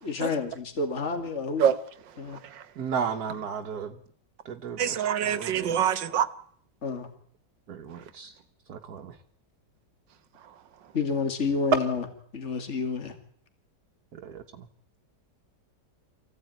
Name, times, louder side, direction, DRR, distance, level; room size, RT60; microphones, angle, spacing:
voice 1, 0.0-1.7 2.2-2.4 6.8-7.1 10.9-12.0 12.3-13.1, left 4 dB, 40° left, 6 dB, 2.4 m, -29 dB
voice 2, 2.8-3.9 4.4-5.8 7.7-8.3 8.7-9.1 14.2-14.4, right 7 dB, 60° right, 3 dB, 1.6 m, -34 dB
voice 3, 4.8-6.3, right 9 dB, 85° right, 14 dB, 1.8 m, -24 dB
24.0 x 15.5 x 9.2 m, 0.65 s
omnidirectional pair, 1.9 m